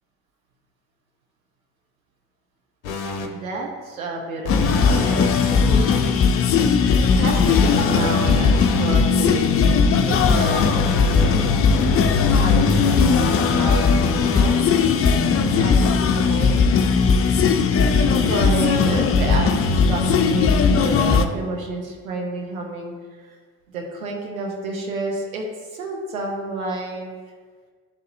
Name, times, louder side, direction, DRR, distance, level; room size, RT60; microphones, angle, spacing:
sound 1, 2.8-3.3 4.5-6.1 7.3-8.9 10.1-14.6 15.8-15.9, left 4 dB, 90° left, 0.6 m, -27 dB
voice 1, 3.3-5.9 6.9-9.8 10.1-11.4 12.3-14.7 15.6-16.6 17.4-17.5 17.9-22.9 23.2-23.4 23.7-25.4 25.7-27.1, right 2 dB, 90° right, 0 dB, 0.7 m, -30 dB
sound 2, 4.5-21.3, left 5 dB, 35° left, 0.5 m, -18 dB
11.0 x 4.0 x 2.6 m, 1.5 s
hypercardioid pair, 50°, 40 cm